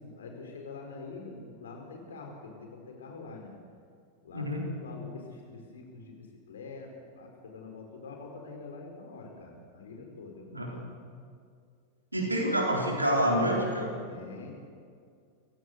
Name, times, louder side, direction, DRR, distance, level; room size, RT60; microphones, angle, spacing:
voice 1, 0.0-3.5 4.2-10.9 14.1-14.6, left 3 dB, 65° left, 2 dB, 4.7 m, -45 dB
voice 2, 4.3-4.7 10.5-10.7 12.1-14.0, equal, 85° right, 0 dB, 4.2 m, -27 dB
27.5 x 16.0 x 6.9 m, 2.2 s
figure-of-eight pair, 90°, 0 cm